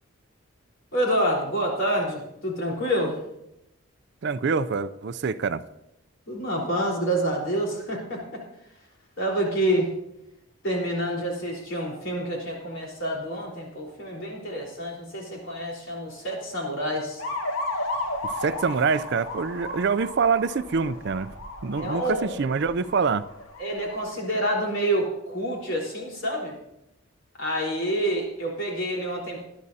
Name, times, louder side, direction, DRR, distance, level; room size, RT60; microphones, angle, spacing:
voice 1, 0.9-3.2 6.3-8.4 9.2-9.9 10.6-17.2 21.8-22.3 23.6-26.6 27.4-29.4, right 1 dB, 60° left, 4.1 m, -27 dB
voice 2, 4.2-5.6 18.2-21.3 21.6-23.3, right 5 dB, 50° right, 0.4 m, -25 dB
sound 1, 17.2-24.1, left 2 dB, 80° left, 2.1 m, -34 dB
21.0 x 10.5 x 2.8 m
head